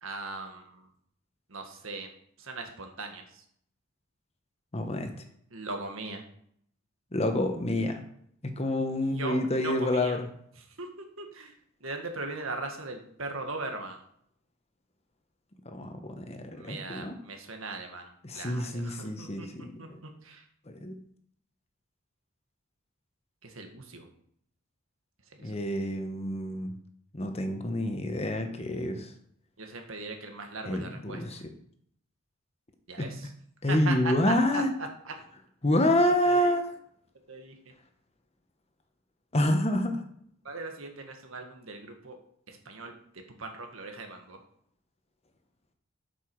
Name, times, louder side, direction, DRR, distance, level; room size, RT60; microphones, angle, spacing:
voice 1, 0.0-0.9 1.5-2.1 2.4-3.4 5.5-6.2 9.0-10.2 10.8-11.5 11.8-14.0 16.5-19.5 19.8-20.4 23.4-24.1 25.4-25.5 29.6-31.4 32.9-33.3 33.7-35.1 36.1-36.5 37.3-37.7 40.4-42.2 42.5-42.9 43.4-44.4, right 3 dB, 80° right, 4 dB, 1.6 m, -39 dB
voice 2, 4.7-5.1 7.1-8.0 8.4-10.3 15.6-17.2 18.2-20.0 20.7-20.9 25.4-26.8 27.1-29.1 30.6-31.4 33.0-33.1 33.6-34.7 35.6-36.7 39.3-40.0, left 1 dB, 30° left, 6 dB, 1.0 m, -28 dB
8.5 x 6.9 x 4.7 m, 0.67 s
head